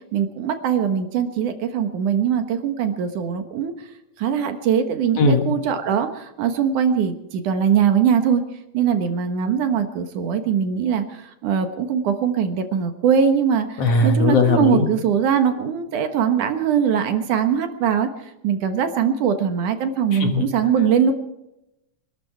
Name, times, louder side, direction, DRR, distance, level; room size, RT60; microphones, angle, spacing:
voice 1, 0.1-3.7 4.2-8.4 8.7-11.0 11.4-13.7 14.0-18.1 18.4-21.1, right 7 dB, 70° right, 7 dB, 2.8 m, -21 dB
voice 2, 5.2-5.5 13.8-14.9 20.1-20.5, left 3 dB, 55° left, 4 dB, 2.2 m, -18 dB
25.5 x 12.5 x 4.6 m, 0.89 s
omnidirectional pair, 3.8 m